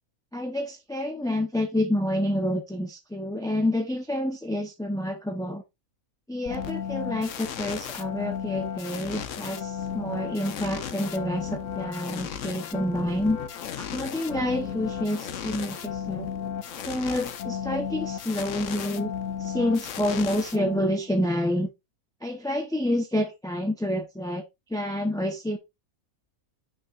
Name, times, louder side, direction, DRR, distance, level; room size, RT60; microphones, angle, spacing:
voice 1, 0.3-5.6 6.3-13.4 13.8-16.5 16.8-19.1 19.4-21.7 22.2-24.4 24.7-25.6, left 1 dB, 5° left, 0.6 m, -28 dB
sound 1, 6.5-21.1, left 8 dB, 65° left, 1.1 m, -34 dB
9.4 x 5.3 x 2.5 m
omnidirectional pair, 1.5 m